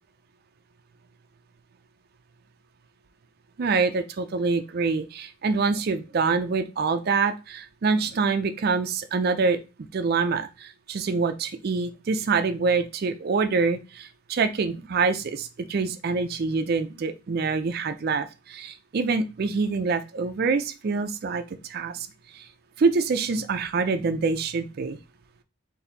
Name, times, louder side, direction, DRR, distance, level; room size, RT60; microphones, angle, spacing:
voice 1, 3.6-9.6 9.9-22.1 22.3-22.5 22.8-25.0, right 4 dB, 50° right, 8 dB, 0.4 m, -25 dB
4.2 x 2.7 x 3.9 m, 0.29 s
head